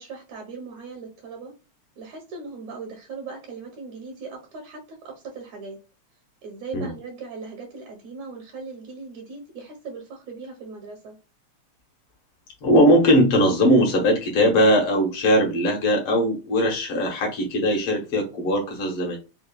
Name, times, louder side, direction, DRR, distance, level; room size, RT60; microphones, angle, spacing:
voice 1, 0.0-1.5 2.0-5.8 6.4-11.2, right 4 dB, 75° right, 2.2 m, -39 dB
voice 2, 12.6-19.2, equal, 60° left, 1.7 m, -20 dB
5.1 x 2.3 x 2.2 m
omnidirectional pair, 3.3 m